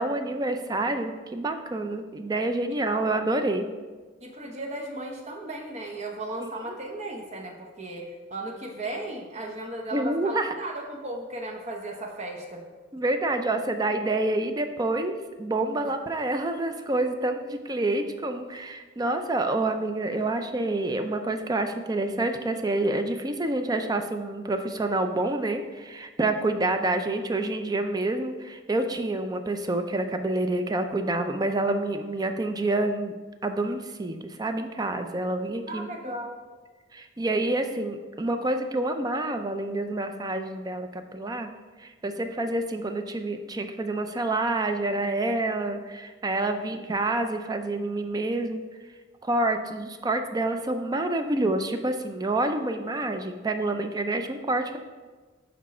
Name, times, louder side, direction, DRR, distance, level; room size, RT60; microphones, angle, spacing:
voice 1, 0.0-3.7 6.4-6.5 9.9-10.5 12.9-15.1 15.4-33.1 33.4-35.9 36.9-41.5 41.8-48.6 49.2-54.8, right 2 dB, 20° right, 7 dB, 0.4 m, -28 dB
voice 2, 2.7-3.0 4.2-12.6 15.8-15.9 35.7-36.4, right 1 dB, 35° right, 1 dB, 0.9 m, -36 dB
6.3 x 4.6 x 4.2 m, 1.3 s
head